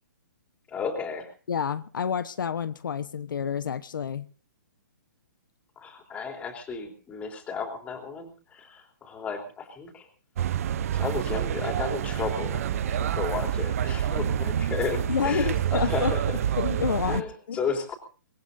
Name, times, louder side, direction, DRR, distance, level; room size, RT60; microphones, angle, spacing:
voice 1, 0.7-1.3 5.8-10.1 10.9-16.4 17.1-18.0, left 5 dB, 10° left, 3.6 m, -33 dB
voice 2, 1.5-4.3 15.1-16.1 16.6-17.6, left 7 dB, 75° left, 1.1 m, -29 dB
sound 1, 10.4-17.2, right 10 dB, 45° right, 0.8 m, -28 dB
24.5 x 21.5 x 2.7 m
hypercardioid pair, 160°, 11 cm